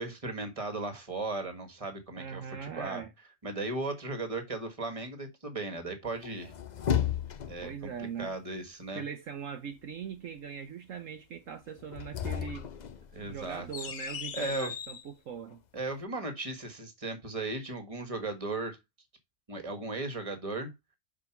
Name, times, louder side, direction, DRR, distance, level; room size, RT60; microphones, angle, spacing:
voice 1, 0.0-3.0 3.4-6.5 7.5-7.9 8.2-9.0 13.1-13.7 14.3-14.7 15.7-18.8 19.5-20.7, right 2 dB, 25° right, 1.6 m, -36 dB
voice 2, 2.1-3.1 7.6-8.3 8.9-12.7 13.2-15.6, right 7 dB, 65° right, 1.1 m, -40 dB
sound 1, 6.2-7.7 11.8-15.1, left 9 dB, 55° left, 0.4 m, -34 dB
6.1 x 4.9 x 5.8 m
omnidirectional pair, 1.6 m